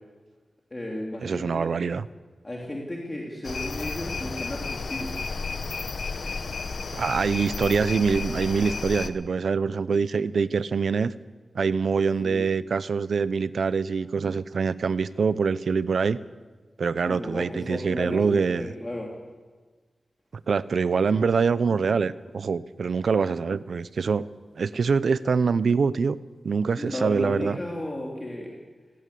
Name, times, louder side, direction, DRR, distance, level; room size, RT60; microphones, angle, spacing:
voice 1, 0.7-1.7 2.4-5.2 12.2-12.4 17.1-19.1 26.7-28.5, left 1 dB, 25° left, -2 dB, 3.2 m, -34 dB
voice 2, 1.2-2.1 7.0-11.1 11.5-16.2 16.8-18.7 20.5-24.3 24.6-26.2 26.4-27.6, right 5 dB, 80° right, 16 dB, 0.7 m, -24 dB
sound 1, 3.4-9.1, left 4 dB, 70° left, 1.2 m, -32 dB
19.5 x 17.0 x 8.5 m, 1.4 s
wide cardioid pair, 95°, 0 cm